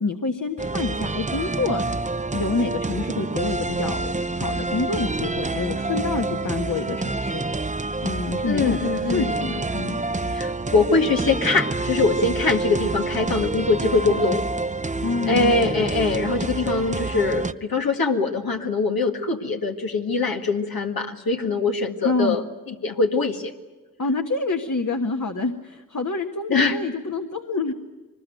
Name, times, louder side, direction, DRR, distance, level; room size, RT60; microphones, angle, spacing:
voice 1, 0.0-1.8 2.3-7.4 8.0-8.8 9.1-10.0 15.0-15.5 22.0-22.4 24.0-27.7, left 3 dB, 60° left, 4 dB, 1.6 m, -27 dB
sound 1, 0.6-17.5, right 3 dB, 20° right, 0.7 m, -27 dB
voice 2, 8.5-9.3 10.3-14.4 15.3-23.5 26.5-26.8, left 3 dB, 80° left, 2 dB, 2.0 m, -23 dB
23.5 x 20.5 x 9.3 m, 1.2 s
cardioid pair, 50°, 35 cm